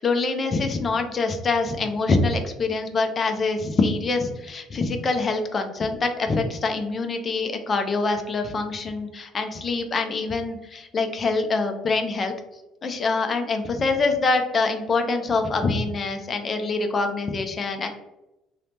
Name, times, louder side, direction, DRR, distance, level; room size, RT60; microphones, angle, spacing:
voice 1, 0.0-12.3 12.8-17.9, left 3 dB, 25° left, 6 dB, 0.3 m, -25 dB
2.7 x 2.0 x 3.1 m, 0.94 s
cardioid pair, 170°, 0 cm